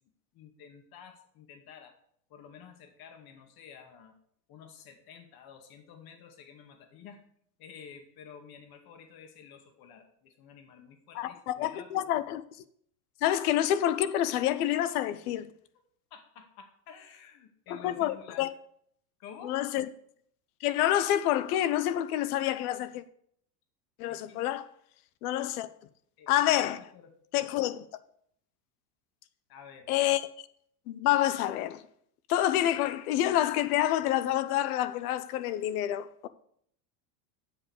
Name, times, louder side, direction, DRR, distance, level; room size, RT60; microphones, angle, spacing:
voice 1, 0.0-1.9 2.3-4.1 4.5-7.2 7.6-12.1 16.1-18.5 19.2-19.6 24.1-24.4 25.4-25.5 26.2-27.1 29.5-29.9, left 7 dB, 50° left, 2.2 m, -51 dB
voice 2, 11.1-12.4 13.2-15.5 17.7-18.5 19.4-19.9 20.6-23.0 24.0-24.7 25.2-25.7 26.3-26.8 27.3-27.9 29.9-30.3 30.9-31.8 32.3-36.3, left 12 dB, 75° left, 0.9 m, -28 dB
7.6 x 6.9 x 8.0 m
supercardioid pair, 115°, 45 cm